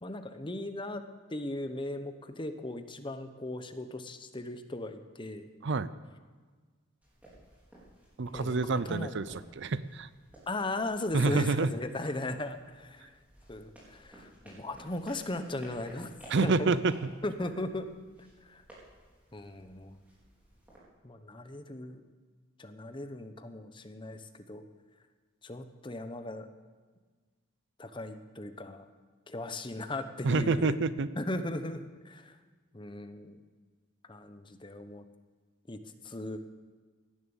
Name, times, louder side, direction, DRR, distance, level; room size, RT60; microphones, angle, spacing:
voice 1, 0.0-1.0 1.3-5.5 8.3-9.1 10.5-13.1 13.5-16.1 16.4-16.8 17.2-17.9 18.2-18.6 19.3-20.0 21.0-22.0 22.6-24.6 25.4-26.5 27.8-28.9 29.3-30.7 31.2-32.4 32.7-33.4 34.1-35.1 35.7-36.4, left 2 dB, 25° left, 8 dB, 0.9 m, -37 dB
sound 1, 7.0-20.8, right 1 dB, 5° right, 4.2 m, -56 dB
voice 2, 8.2-10.1 11.1-11.7 16.3-16.9 30.2-31.1, right 3 dB, 55° right, 15 dB, 0.5 m, -28 dB
17.5 x 11.0 x 7.1 m, 1.4 s
head